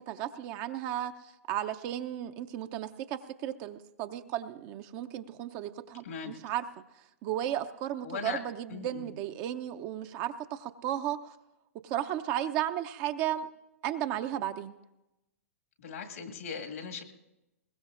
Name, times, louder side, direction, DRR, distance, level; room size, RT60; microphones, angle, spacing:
voice 1, 0.1-1.1 1.5-6.6 7.2-11.3 11.8-13.5 13.8-14.7, right 11 dB, 40° right, 8 dB, 0.6 m, -34 dB
voice 2, 6.0-6.4 8.0-8.4 8.7-9.2 15.8-17.0, left 6 dB, 75° left, 2 dB, 1.9 m, -39 dB
21.5 x 20.0 x 2.5 m, 0.96 s
hypercardioid pair, 110°, 8 cm